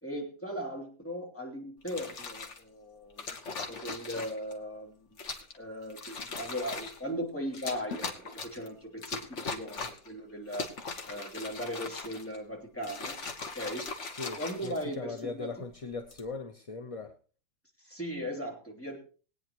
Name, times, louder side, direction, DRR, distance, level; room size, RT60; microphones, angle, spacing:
voice 1, 0.0-3.3 3.7-5.1 5.5-10.7 11.1-13.1 13.5-13.8 14.4-15.7 17.8-19.0, equal, 10° left, -2 dB, 2.9 m, -38 dB
sound 1, 1.8-2.6 3.2-4.5 5.2-5.6 5.9-7.0 7.5-8.7 9.0-10.1 10.5-12.4 12.8-15.2 15.9-16.3, left 4 dB, 65° left, 1.6 m, -39 dB
voice 2, 14.1-17.2, left 4 dB, 35° left, 6 dB, 0.7 m, -39 dB
21.5 x 9.3 x 3.0 m, 0.38 s
omnidirectional pair, 1.4 m